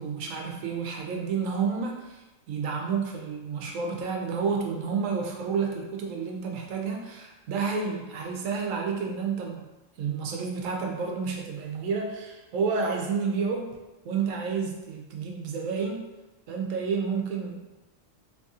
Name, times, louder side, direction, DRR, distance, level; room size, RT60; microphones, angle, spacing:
voice 1, 0.0-9.6 10.0-13.7 14.0-16.1 16.5-17.7, right 5 dB, 80° right, 1 dB, 1.0 m, -30 dB
3.0 x 2.7 x 3.5 m, 1.1 s
omnidirectional pair, 1.3 m